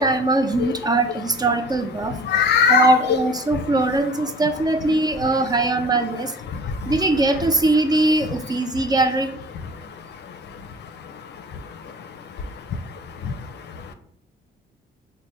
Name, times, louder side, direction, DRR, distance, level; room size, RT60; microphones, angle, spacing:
voice 1, 0.0-2.2 2.7-6.3 6.9-9.3, right 2 dB, 20° right, 8 dB, 0.3 m, -21 dB
voice 2, 2.1-3.2 3.5-3.7 4.8-4.9 5.2-5.3 6.1-7.0 8.2-8.4 9.7-13.9, left 6 dB, 60° left, 8 dB, 0.5 m, -26 dB
3.3 x 2.1 x 3.8 m, 0.63 s
cardioid pair, 90°, 20 cm